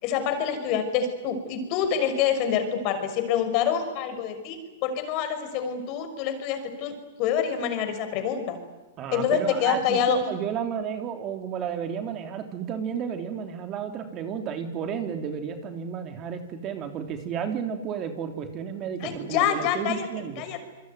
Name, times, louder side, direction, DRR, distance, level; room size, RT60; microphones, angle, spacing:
voice 1, 0.0-6.9 7.2-8.6 9.1-10.3 19.0-20.1 20.4-20.6, left 8 dB, 45° left, 8 dB, 5.8 m, -26 dB
voice 2, 9.0-20.5, right 7 dB, 35° right, 6 dB, 3.3 m, -32 dB
27.0 x 22.5 x 9.4 m, 1.1 s
hypercardioid pair, 130°, 0 cm